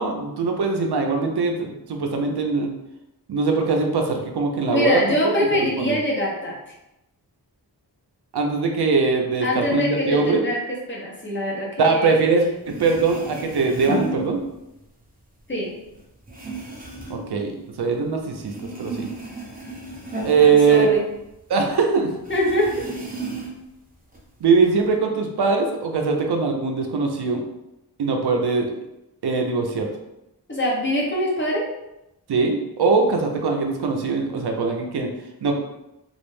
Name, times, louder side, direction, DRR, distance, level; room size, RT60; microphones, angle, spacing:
voice 1, 0.0-2.7 3.3-5.0 5.8-6.0 8.3-10.4 11.8-14.4 17.1-18.5 18.8-19.1 20.2-20.9 21.5-22.1 24.4-27.4 28.0-28.7 29.2-29.9 32.3-35.1 35.4-35.5, right 4 dB, 80° right, 3 dB, 0.5 m, -21 dB
voice 2, 4.7-6.7 9.4-10.6 10.9-12.2 15.5-15.7 20.4-21.0 22.3-22.9 30.5-31.7, left 1 dB, 30° left, -4 dB, 0.8 m, -24 dB
sound 1, 12.4-12.5 12.6-14.9 15.2-18.1 18.4-21.4 21.7-21.8 22.2-23.7 24.1-24.9, right 2 dB, 20° right, 0.7 m, -34 dB
2.4 x 2.0 x 3.1 m, 0.89 s
wide cardioid pair, 50°, 39 cm